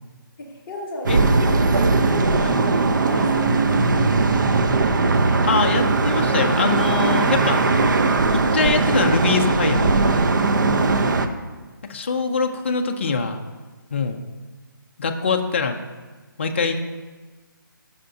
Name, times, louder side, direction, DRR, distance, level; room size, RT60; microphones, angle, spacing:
voice 1, 0.4-2.6 3.1-4.3 10.4-11.4, left 2 dB, 10° left, -8 dB, 1.0 m, -36 dB
sound 1, 1.0-11.3, right 3 dB, 60° right, 0.5 m, -19 dB
voice 2, 5.5-7.6 8.3-10.0 11.8-13.4 13.9-14.2 15.0-15.8 16.4-16.9, left 5 dB, 35° left, 4 dB, 0.4 m, -23 dB
7.8 x 5.6 x 2.6 m, 1.4 s
hypercardioid pair, 170°, 12 cm